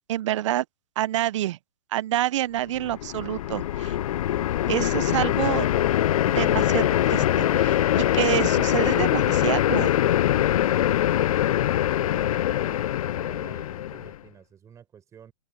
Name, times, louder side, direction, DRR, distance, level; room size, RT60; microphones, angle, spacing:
voice 1, 0.1-0.6 1.0-1.6 1.9-4.0 4.7-5.7 6.3-9.9, right 14 dB, 55° right, 0.7 m, -27 dB
sound 1, 2.8-14.2, left 12 dB, 65° left, 0.4 m, -23 dB
sound 2, 4.2-12.3, left 13 dB, 15° left, 0.5 m, -46 dB
voice 2, 12.5-12.8 13.1-15.3, right 8 dB, 15° right, 5.7 m, -49 dB
open air
hypercardioid pair, 140°, 19 cm